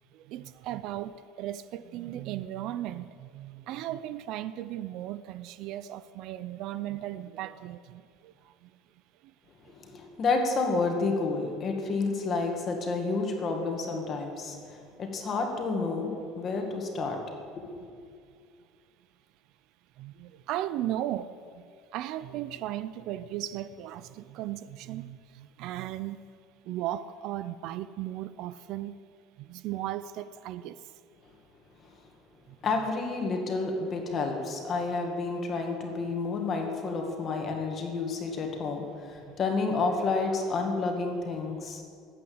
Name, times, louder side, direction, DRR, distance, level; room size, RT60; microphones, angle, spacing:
voice 1, 0.1-8.3 8.6-8.7 20.0-21.7 21.9-26.2 26.7-29.0 29.4-30.8 39.2-39.4, right 13 dB, 50° right, 14 dB, 0.5 m, -36 dB
voice 2, 9.6-17.2 17.6-17.9 31.8-31.9 32.6-41.8, left 3 dB, 25° left, 3 dB, 2.0 m, -30 dB
19.5 x 8.6 x 7.9 m, 2.2 s
cardioid pair, 180°, 0 cm